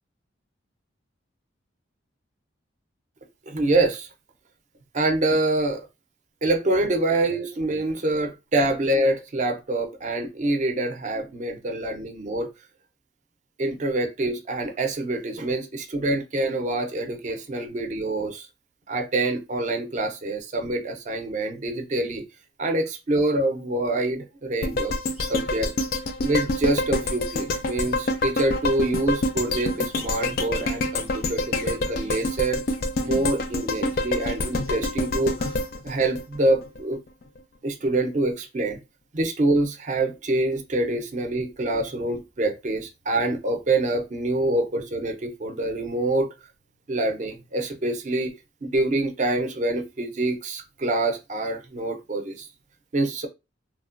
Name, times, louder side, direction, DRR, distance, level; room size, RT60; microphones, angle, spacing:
voice 1, 3.5-4.1 4.9-5.9 6.4-12.5 13.6-18.5 18.9-22.2 22.6-25.7 26.2-32.6 33.0-35.6 35.8-37.0 37.6-38.8 39.1-46.3 46.9-48.3 48.6-52.5 52.9-53.3, right 2 dB, 40° right, 0.5 m, -26 dB
sound 1, 24.6-36.8 37.2-37.3, left 2 dB, 50° left, 0.4 m, -27 dB
3.1 x 2.1 x 2.4 m
head